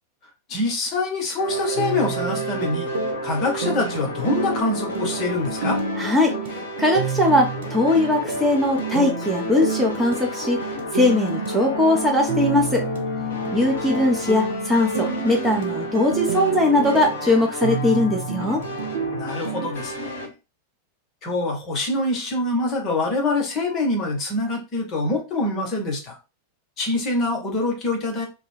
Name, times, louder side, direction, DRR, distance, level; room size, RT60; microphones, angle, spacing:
voice 1, 0.5-2.9 3.2-5.8 19.1-20.3 21.2-26.2 26.8-28.3, left 2 dB, 35° left, 1 dB, 0.9 m, -25 dB
sound 1, 1.4-20.3, left 1 dB, 65° left, 0.6 m, -31 dB
sound 2, 1.8-19.7, right 6 dB, 55° right, 0.5 m, -30 dB
voice 2, 6.0-10.6 10.9-12.8 13.5-18.6, left 1 dB, 5° right, -1 dB, 0.5 m, -20 dB
2.2 x 2.1 x 3.1 m, 0.29 s
figure-of-eight pair, 90°, 0 cm